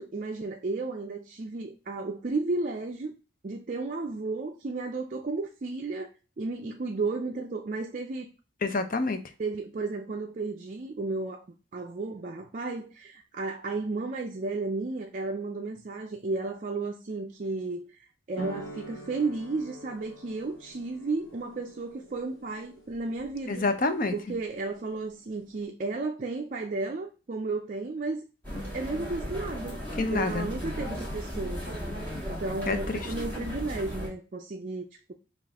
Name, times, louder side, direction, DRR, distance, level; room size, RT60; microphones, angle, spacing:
voice 1, 0.0-3.1 3.4-6.1 6.4-8.3 9.4-11.4 11.7-23.7 24.1-28.3 28.7-31.6 32.3-35.1, right 3 dB, 40° right, 0.4 m, -33 dB
voice 2, 8.6-9.2 23.5-24.1 30.0-30.5 32.7-33.0, left 3 dB, 45° left, 0.5 m, -27 dB
sound 1, 18.4-25.7, right 2 dB, 85° left, 1.3 m, -46 dB
sound 2, 28.4-34.1, equal, 10° left, 1.6 m, -36 dB
5.3 x 2.5 x 3.4 m
head